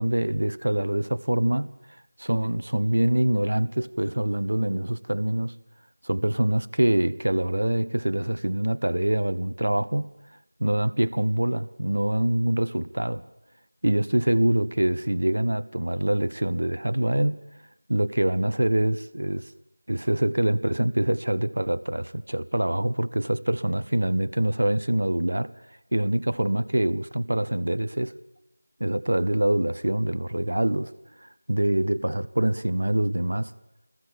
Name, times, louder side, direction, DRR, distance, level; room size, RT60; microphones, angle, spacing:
voice 1, 0.0-1.7 2.2-5.5 6.0-10.1 10.6-13.2 13.8-17.4 17.9-19.5 19.9-25.5 25.9-28.1 28.8-30.9 31.2-33.5, right 1 dB, 65° right, 14 dB, 1.2 m, -25 dB
29.5 x 21.0 x 7.3 m, 0.95 s
figure-of-eight pair, 170°, 0 cm